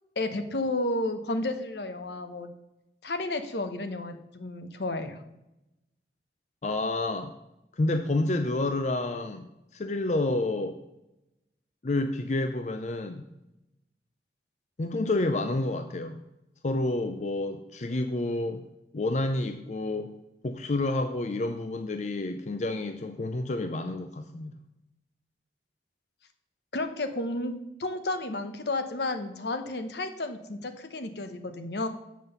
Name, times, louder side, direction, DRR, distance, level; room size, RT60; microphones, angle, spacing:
voice 1, 0.2-2.5 3.0-5.2 26.7-31.9, left 2 dB, 70° left, 8 dB, 0.9 m, -32 dB
voice 2, 6.6-7.3 7.8-9.5 9.7-10.8 11.8-13.3 14.8-16.2 16.6-18.6 18.9-20.1 20.4-24.6, left 2 dB, 40° left, 8 dB, 0.5 m, -29 dB
7.6 x 5.5 x 6.7 m, 0.91 s
head